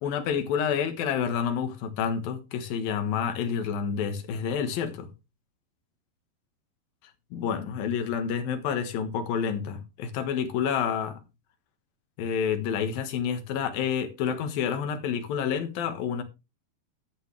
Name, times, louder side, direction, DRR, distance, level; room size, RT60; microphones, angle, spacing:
voice 1, 0.0-5.1 7.3-11.2 12.2-16.2, left 7 dB, 70° left, 3.1 m, -29 dB
12.5 x 9.5 x 3.2 m
omnidirectional pair, 4.5 m